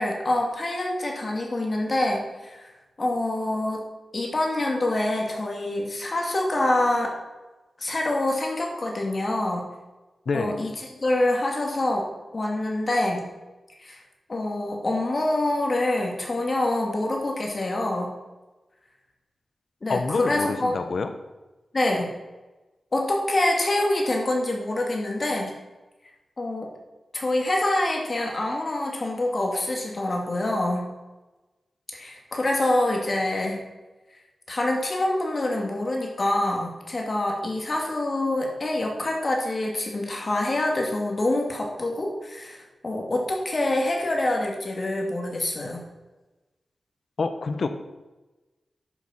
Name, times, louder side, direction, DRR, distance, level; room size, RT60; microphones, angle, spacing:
voice 1, 0.0-2.7 3.0-3.8 4.1-7.1 7.8-9.7 10.3-10.7 11.0-12.1 12.3-13.3 13.8-14.0 14.3-18.1 19.8-20.7 21.7-22.1 22.9-25.5 26.4-26.7 27.1-30.9 31.9-33.7 34.5-45.8, left 1 dB, 45° left, 1 dB, 2.4 m, -26 dB
voice 2, 19.9-21.1 47.2-47.7, left 4 dB, 65° left, 8 dB, 1.0 m, -27 dB
11.0 x 6.6 x 5.6 m, 1.1 s
wide cardioid pair, 75°, 0 cm